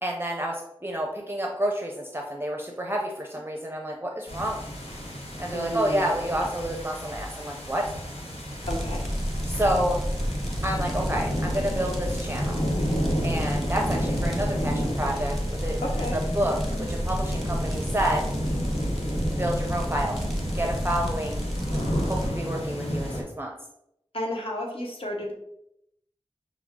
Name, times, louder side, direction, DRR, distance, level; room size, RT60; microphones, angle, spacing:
voice 1, 0.0-4.6 5.4-7.8 9.4-10.0 10.6-12.6 13.2-18.3 19.4-20.2 20.5-21.4 22.1-23.5, right 1 dB, 20° right, 0 dB, 0.6 m, -29 dB
sound 1, 4.3-23.2, equal, 85° left, 1.1 m, -32 dB
voice 2, 5.5-6.1 8.7-9.1 15.8-16.2 24.1-25.3, left 1 dB, 65° left, -1 dB, 1.1 m, -32 dB
sound 2, 8.6-22.3, equal, ahead, 1.0 m, -31 dB
5.9 x 2.0 x 3.5 m, 0.79 s
wide cardioid pair, 50°, 10 cm